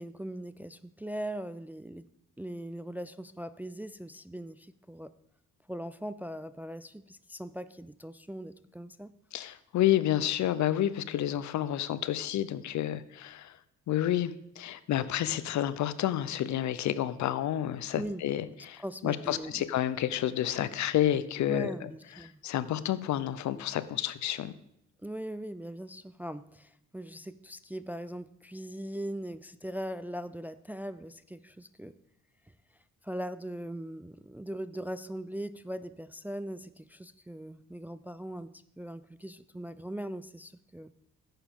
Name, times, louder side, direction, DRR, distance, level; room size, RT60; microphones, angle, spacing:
voice 1, 0.0-2.1 2.4-5.1 5.7-9.1 17.9-18.3 18.8-19.7 21.5-22.4 25.0-31.9 33.0-40.9, right 1 dB, 5° right, 13 dB, 0.3 m, -40 dB
voice 2, 9.3-13.6 13.9-21.9 22.4-24.5, left 12 dB, 70° left, 15 dB, 0.7 m, -30 dB
11.5 x 9.1 x 3.7 m, 0.75 s
cardioid pair, 90°, 30 cm